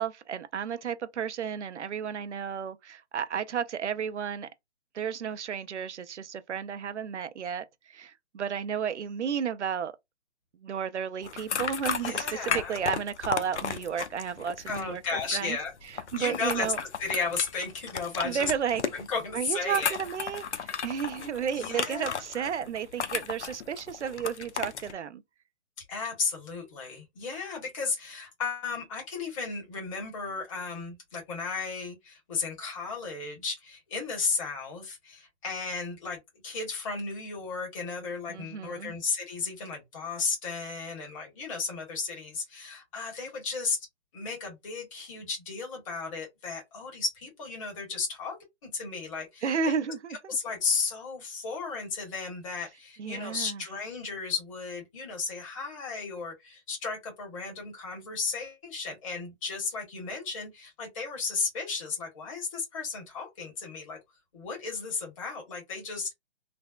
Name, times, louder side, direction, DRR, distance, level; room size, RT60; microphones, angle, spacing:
voice 1, 0.0-4.5 4.9-9.9 10.6-15.6 16.1-16.8 18.2-18.8 19.3-25.2 38.3-38.9 49.4-50.4 53.0-53.6, right 7 dB, 80° right, 0.5 m, -32 dB
sound 1, 11.2-24.9, left 6 dB, 75° left, 0.6 m, -34 dB
voice 2, 12.0-12.8 14.7-15.7 16.1-16.7 17.0-18.5 18.9-20.0 21.5-22.5 25.9-43.9 44.1-48.4 48.6-49.8 50.3-64.0 64.3-66.1, left 4 dB, 30° left, 1.3 m, -34 dB
3.3 x 2.0 x 2.3 m
figure-of-eight pair, 145°, 34 cm